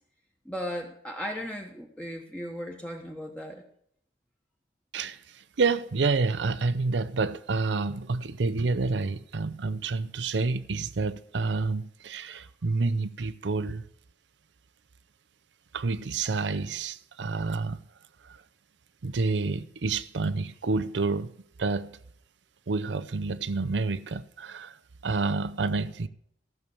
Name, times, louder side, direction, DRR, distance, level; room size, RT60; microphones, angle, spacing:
voice 1, 0.4-3.6, equal, 5° left, 1.2 m, -36 dB
voice 2, 4.9-13.9 15.7-17.8 18.2-18.4 19.0-21.3 21.6-22.0 22.7-24.8 25.0-26.1, right 3 dB, 85° right, 0.6 m, -29 dB
14.5 x 6.8 x 6.9 m
head